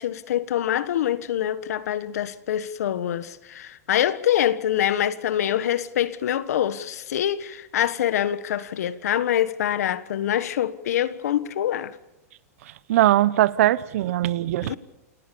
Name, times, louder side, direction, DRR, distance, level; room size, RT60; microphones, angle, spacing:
voice 1, 0.0-12.0 14.6-14.8, left 11 dB, 75° left, 1.5 m, -25 dB
voice 2, 12.9-14.7, right 14 dB, 65° right, 1.0 m, -20 dB
28.5 x 18.5 x 7.0 m
hypercardioid pair, 140°, 8 cm